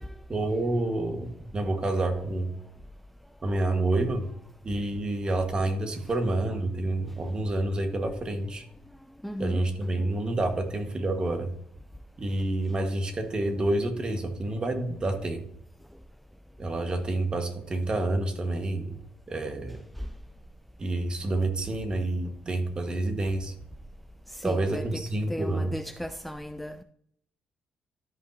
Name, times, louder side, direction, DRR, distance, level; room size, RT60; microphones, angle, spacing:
voice 1, 0.3-2.5 3.4-4.3 4.6-8.6 9.4-11.5 12.2-15.4 16.6-19.0 19.3-19.8 20.8-23.5 24.4-25.7, right 2 dB, 30° right, 1.5 m, -28 dB
voice 2, 9.2-9.6 24.4-25.0 25.3-26.8, equal, ahead, 0.4 m, -35 dB
13.0 x 5.4 x 2.8 m
cardioid pair, 90°, 3 cm